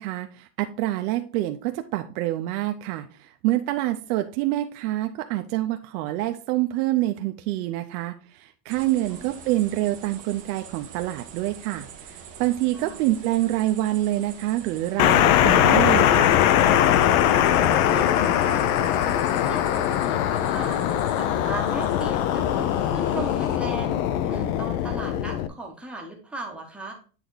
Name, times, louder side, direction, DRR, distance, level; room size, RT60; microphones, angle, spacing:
voice 1, 0.0-16.4, right 15 dB, 70° right, 6 dB, 0.7 m, -26 dB
sound 1, 8.7-23.6, right 7 dB, 20° right, 0.3 m, -45 dB
voice 2, 9.0-9.3 12.7-13.0 17.4-23.9 24.2-26.9, right 2 dB, ahead, 0 dB, 0.7 m, -38 dB
sound 2, 15.0-25.5, left 11 dB, 60° left, 0.6 m, -21 dB
8.3 x 3.5 x 3.9 m, 0.37 s
cardioid pair, 175°, 47 cm